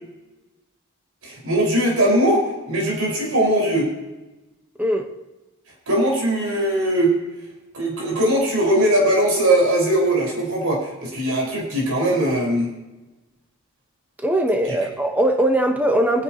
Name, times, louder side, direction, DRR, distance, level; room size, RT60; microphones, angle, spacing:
voice 1, 1.2-3.9 5.9-7.2 7.7-12.7, right 1 dB, 85° right, 5.5 m, -20 dB
voice 2, 14.2-16.2, right 1 dB, 5° right, 1.3 m, -20 dB
25.5 x 9.8 x 3.1 m
head